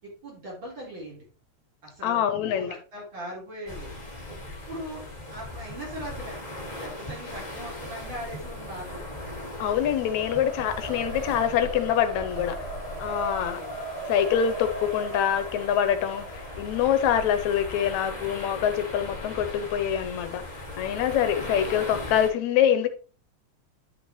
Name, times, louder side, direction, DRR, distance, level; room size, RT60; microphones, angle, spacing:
voice 1, 0.0-1.2 1.8-4.4 4.7-5.0 5.3-9.0 13.3-13.8, equal, 40° right, 4.6 m, -40 dB
voice 2, 2.0-2.7 9.6-12.6 13.0-13.6 14.1-20.4 20.8-22.9, left 9 dB, 80° left, 2.2 m, -25 dB
sound 1, 3.7-22.3, left 1 dB, 20° left, 1.6 m, -39 dB
Race car auto racing, 7.1-19.7, right 1 dB, 25° right, 2.1 m, -40 dB
10.5 x 5.9 x 3.2 m
omnidirectional pair, 3.3 m